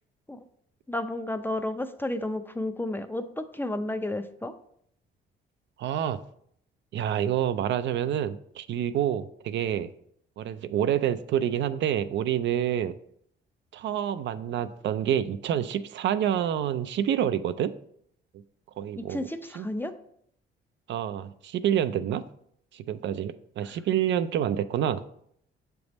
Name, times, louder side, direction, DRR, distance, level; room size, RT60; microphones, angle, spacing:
voice 1, 0.9-4.5 18.9-19.9 23.6-23.8, left 1 dB, 10° left, 9 dB, 0.5 m, -32 dB
voice 2, 5.8-6.2 6.9-9.9 10.4-12.9 13.7-17.7 18.8-19.2 19.6-19.7 20.9-22.2 22.7-25.0, right 10 dB, 65° right, 12 dB, 0.4 m, -27 dB
7.0 x 3.4 x 4.0 m, 0.69 s
cardioid pair, 90°, 20 cm